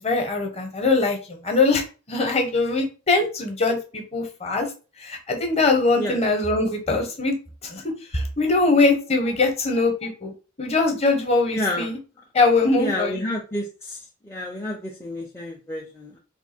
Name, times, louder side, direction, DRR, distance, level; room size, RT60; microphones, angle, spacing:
voice 1, 0.0-4.7 5.0-7.3 7.6-7.8 8.1-10.3 10.6-12.0 12.3-13.2, left 3 dB, 30° left, 3 dB, 0.9 m, -22 dB
voice 2, 11.5-11.9 12.8-14.0 14.2-16.2, left 1 dB, 10° left, -2 dB, 0.5 m, -29 dB
3.3 x 2.3 x 4.3 m, 0.33 s
head